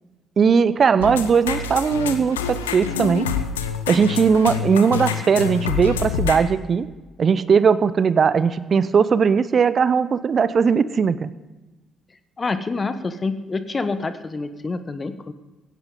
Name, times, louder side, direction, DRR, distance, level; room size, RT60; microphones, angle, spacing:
voice 1, 0.4-3.3 3.9-6.9 7.2-11.3, right 6 dB, 40° right, 15 dB, 0.7 m, -18 dB
sound 1, 1.0-6.4, left 7 dB, 75° left, 0.8 m, -27 dB
voice 2, 12.4-15.3, left 3 dB, 30° left, 11 dB, 1.1 m, -27 dB
17.0 x 15.5 x 3.8 m, 1.1 s
figure-of-eight pair, 45°, 0 cm